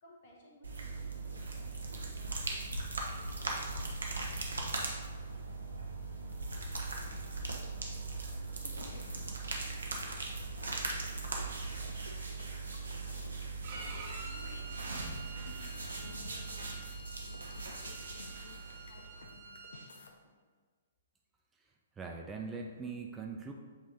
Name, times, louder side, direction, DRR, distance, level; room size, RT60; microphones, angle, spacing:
voice 1, 0.0-5.8 6.1-6.8 7.0-8.1 8.8-11.8 12.3-13.2 13.8-15.5 16.0-16.7 17.1-18.6 18.9-20.1, left 2 dB, 50° left, -2 dB, 1.4 m, -61 dB
sound 1, 0.6-19.5, right 3 dB, 70° right, 0.9 m, -39 dB
sound 2, 8.5-9.7 10.0-10.1 10.4-19.3 19.5-20.1, left 3 dB, 65° left, 0.7 m, -53 dB
Bowed string instrument, 13.6-19.9, right 3 dB, 45° right, 1.1 m, -49 dB
voice 2, 21.6-23.5, right 4 dB, 10° right, 1 dB, 0.4 m, -42 dB
8.1 x 2.9 x 3.9 m, 1.6 s
figure-of-eight pair, 120°, 0 cm